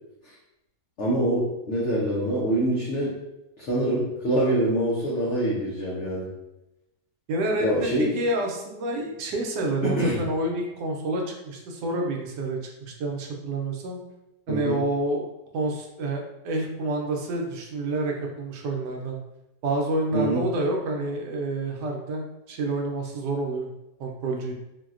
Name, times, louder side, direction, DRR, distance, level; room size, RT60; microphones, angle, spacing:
voice 1, 1.0-3.1 3.6-6.3 7.6-8.1 9.8-10.2 14.5-14.8 20.1-20.4, right 1 dB, 70° left, -5 dB, 0.7 m, -25 dB
voice 2, 7.3-7.9 8.1-14.0 14.5-15.2 15.5-19.2 19.6-23.7 24.0-24.5, right 2 dB, 75° right, 1 dB, 1.1 m, -28 dB
3.9 x 2.2 x 2.4 m, 0.93 s
omnidirectional pair, 1.9 m